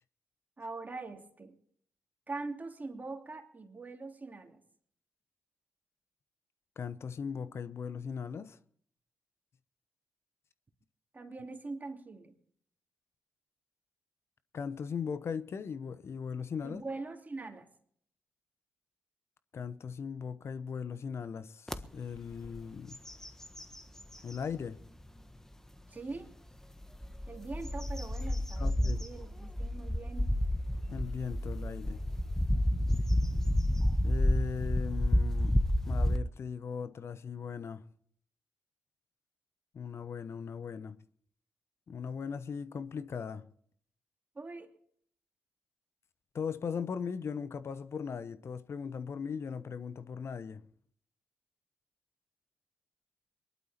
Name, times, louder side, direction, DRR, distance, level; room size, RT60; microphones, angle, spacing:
voice 1, 0.6-1.5 2.3-4.6 11.1-12.3 16.6-17.7 25.9-26.3 27.3-30.4 44.3-44.7, right 3 dB, 35° right, 2.9 m, -43 dB
voice 2, 6.8-8.6 14.5-16.8 19.5-23.0 24.2-24.8 28.6-29.0 30.9-32.0 34.0-35.6 35.9-37.8 39.7-41.0 41.9-43.5 46.3-50.6, left 6 dB, 60° left, 0.9 m, -38 dB
sound 1, 21.7-21.8 22.3-22.6 22.9-24.4 25.0-25.1 26.8-36.2, left 1 dB, 10° left, 1.4 m, -30 dB
22.5 x 12.0 x 4.3 m
hypercardioid pair, 40°, 5 cm